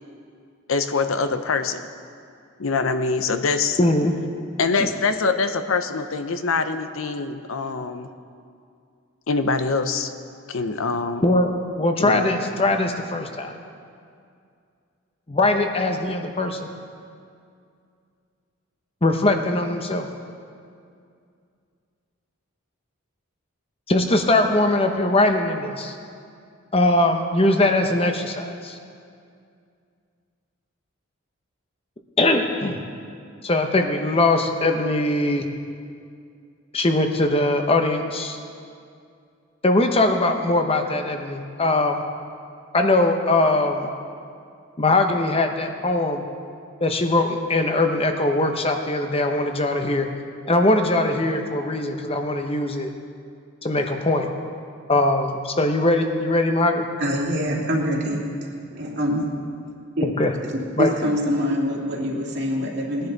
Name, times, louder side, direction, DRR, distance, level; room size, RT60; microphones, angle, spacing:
voice 1, 0.7-1.8 2.6-3.8 4.6-8.1 9.3-10.1 10.5-11.2 12.0-12.3, left 4 dB, 80° left, 9 dB, 0.7 m, -24 dB
voice 2, 3.8-4.1 4.8-4.9 11.2-13.5 15.3-16.7 19.0-20.1 23.9-25.9 26.7-28.8 32.2-32.8 33.4-35.4 36.7-38.4 39.6-42.0 42.7-43.9 44.8-46.2 46.8-50.1 50.5-52.9 53.6-54.3 54.9-56.9 60.0-60.3 60.8-60.9, left 2 dB, 30° left, 5 dB, 0.9 m, -21 dB
voice 3, 57.0-58.2 58.7-59.3 60.0-60.1 60.8-63.1, equal, 55° right, -2 dB, 2.2 m, -24 dB
19.5 x 10.5 x 4.0 m, 2.3 s
head